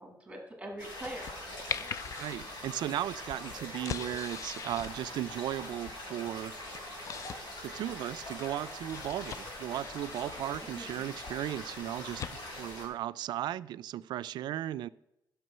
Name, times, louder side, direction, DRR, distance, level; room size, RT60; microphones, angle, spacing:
voice 1, 0.0-1.4 1.7-1.9 10.5-11.1, right 1 dB, 15° right, 2 dB, 1.7 m, -44 dB
sound 1, 0.8-12.9, left 1 dB, 85° left, 3.6 m, -43 dB
sound 2, 1.0-12.8, left 7 dB, 45° left, 0.4 m, -44 dB
voice 2, 2.2-6.7 7.6-14.9, right 12 dB, 85° right, 16 dB, 0.3 m, -36 dB
12.5 x 6.1 x 5.5 m, 0.87 s
cardioid pair, 155°, 7 cm